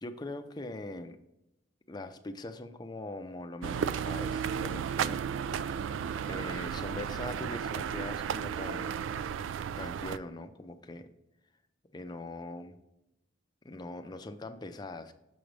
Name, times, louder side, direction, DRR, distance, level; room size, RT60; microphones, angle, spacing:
voice 1, 0.0-1.2 1.9-5.9 6.3-9.1 9.8-11.1 11.9-12.8 13.6-15.1, left 2 dB, 20° left, 7 dB, 0.5 m, -42 dB
sound 1, 3.6-10.2, right 7 dB, 90° right, 0.3 m, -34 dB
6.9 x 5.1 x 3.2 m, 0.87 s
head